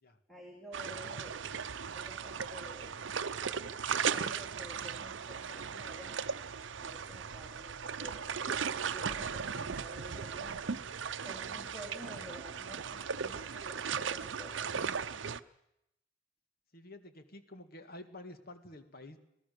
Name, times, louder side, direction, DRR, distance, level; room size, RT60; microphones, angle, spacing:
voice 1, 0.3-1.4 1.9-3.0 4.1-6.4 6.8-8.6 8.9-10.6 11.2-15.1, equal, ahead, 0 dB, 2.7 m, -51 dB
sound 1, 0.7-15.4, right 6 dB, 65° right, 0.7 m, -37 dB
voice 2, 16.7-19.2, left 1 dB, 50° left, 9 dB, 1.9 m, -50 dB
26.0 x 18.0 x 6.8 m, 0.83 s
head